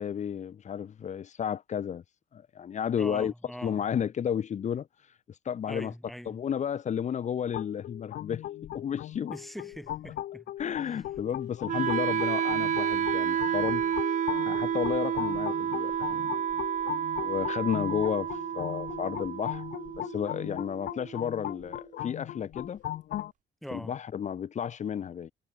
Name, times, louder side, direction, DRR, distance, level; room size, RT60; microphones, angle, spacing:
voice 1, 0.0-2.0 2.3-3.3 3.6-4.9 5.3-5.9 6.3-8.4 8.7-9.3 10.6-13.8 14.4-16.4 17.2-19.6 20.0-22.8 23.7-25.3, left 8 dB, 45° left, 2.4 m, -32 dB
voice 2, 3.0-3.8 5.7-6.4 9.3-10.5 23.6-23.9, equal, ahead, 4.3 m, -41 dB
sound 1, 7.5-23.3, left 13 dB, 65° left, 3.3 m, -38 dB
Wind instrument woodwind instrument, 11.7-21.7, right 9 dB, 50° right, 2.3 m, -30 dB
cardioid pair, 110°, 17 cm